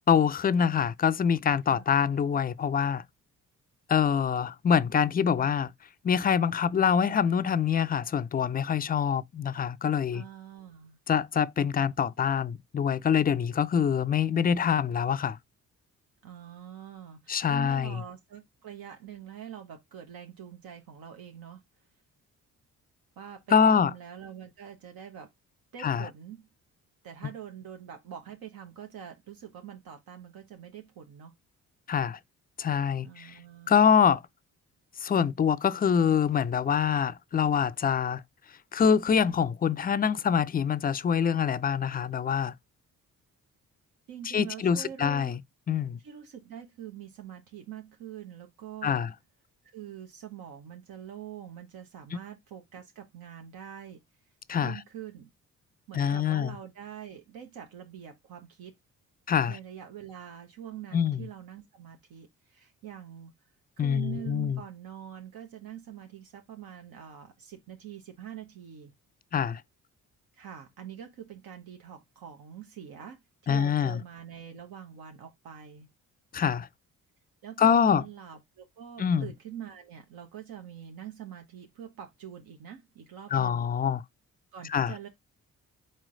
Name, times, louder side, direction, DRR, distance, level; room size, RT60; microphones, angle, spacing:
voice 1, 0.1-3.0 3.9-5.7 6.0-10.2 11.1-15.4 17.3-18.0 23.5-23.9 25.8-26.1 31.9-32.2 32.6-33.3 33.7-34.2 35.0-38.2 38.7-42.5 44.3-45.4 45.7-46.0 48.8-49.1 54.5-54.8 55.9-56.6 59.3-59.6 60.9-61.3 63.8-64.6 69.3-69.6 73.5-74.0 76.3-76.7 77.6-78.0 79.0-79.3 83.3-84.0 84.7-84.9, left 7 dB, 25° left, 0.3 m, -25 dB
voice 2, 10.1-11.0 16.2-21.6 23.2-25.3 25.7-26.5 27.0-31.3 33.0-34.0 44.1-45.4 46.0-49.0 49.6-54.0 54.5-55.3 55.9-58.8 59.5-63.3 63.8-68.9 70.3-75.9 77.4-83.7 84.5-85.1, right 9 dB, 80° right, 0.9 m, -44 dB
4.4 x 3.1 x 3.7 m
supercardioid pair, 60°, 35 cm